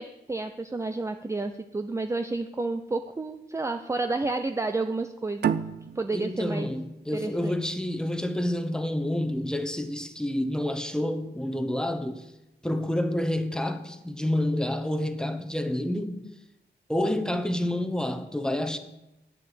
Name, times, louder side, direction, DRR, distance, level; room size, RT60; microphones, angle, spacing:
voice 1, 0.0-5.6 6.0-6.7 7.1-7.6, right 3 dB, 15° right, 0.6 m, -30 dB
sound 1, 5.4-8.6, right 8 dB, 65° right, 0.5 m, -32 dB
voice 2, 6.1-12.3 12.6-16.2 16.9-18.8, left 1 dB, 5° left, 1.1 m, -28 dB
8.7 x 6.9 x 8.3 m
cardioid pair, 85°, 18 cm